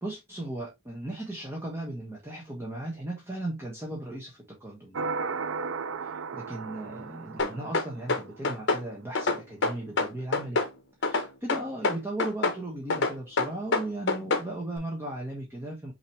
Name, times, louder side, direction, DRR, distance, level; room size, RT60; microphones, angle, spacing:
voice 1, 0.0-5.1 6.0-10.6 11.0-15.9, right 1 dB, 10° right, 1.0 m, -37 dB
sound 1, 4.9-8.4, right 4 dB, 70° right, 0.4 m, -35 dB
sound 2, 7.4-8.8 9.2-10.7 11.0-12.6 12.9-14.5, left 3 dB, 60° left, 1.0 m, -26 dB
5.6 x 2.9 x 3.2 m
head